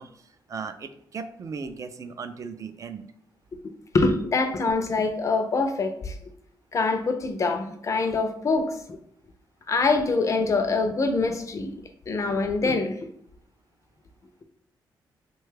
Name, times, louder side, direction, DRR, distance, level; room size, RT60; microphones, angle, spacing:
voice 1, 0.0-3.1, right 5 dB, 40° right, 9 dB, 0.3 m, -37 dB
voice 2, 3.6-6.2 6.7-8.8 9.7-11.8 12.1-13.0, left 3 dB, 40° left, 7 dB, 0.4 m, -24 dB
3.1 x 2.2 x 3.3 m, 0.70 s
cardioid pair, 105°, 8 cm